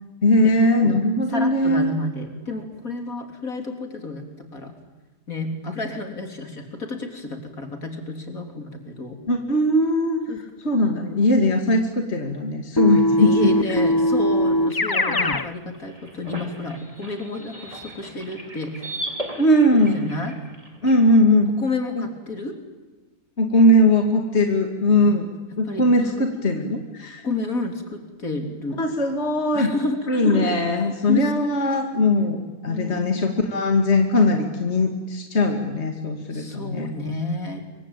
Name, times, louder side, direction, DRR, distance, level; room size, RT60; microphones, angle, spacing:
voice 1, 0.2-1.8 9.3-10.2 10.6-13.3 13.7-13.8 19.4-20.0 20.8-21.5 23.4-27.2 28.8-29.7 30.1-36.9, left 1 dB, 45° left, 3 dB, 2.7 m, -20 dB
voice 2, 1.3-4.7 5.3-9.2 10.3-10.4 13.2-18.9 19.7-20.4 21.6-22.6 25.0-25.2 25.5-26.2 27.2-28.8 29.5-30.1 30.3-30.6 31.1-31.5 32.7-33.2 36.3-37.6, left 2 dB, 60° left, 5 dB, 3.9 m, -31 dB
Keyboard (musical), 12.8-15.5, equal, 20° left, 0.6 m, -20 dB
sound 1, 15.6-21.0, right 1 dB, 20° right, 3.2 m, -37 dB
27.0 x 24.5 x 9.0 m, 1.3 s
omnidirectional pair, 1.7 m